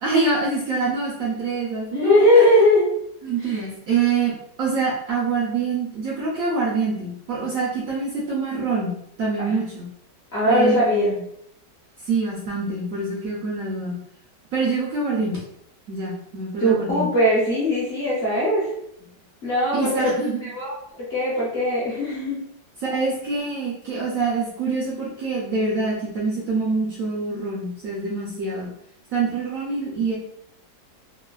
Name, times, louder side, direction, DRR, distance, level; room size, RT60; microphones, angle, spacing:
voice 1, 0.0-2.2 3.2-9.9 10.5-11.2 12.0-14.0 14.5-15.4 15.9-17.1 19.7-20.4 22.8-28.7 29.1-30.1, right 4 dB, 70° right, -5 dB, 0.8 m, -25 dB
voice 2, 1.9-2.9 3.4-3.6 9.4-9.5 10.3-11.1 16.6-18.7 19.4-19.9 20.5-20.8 21.1-22.4, left 1 dB, 45° left, -8 dB, 0.9 m, -19 dB
3.1 x 2.1 x 2.3 m, 0.73 s
omnidirectional pair, 2.0 m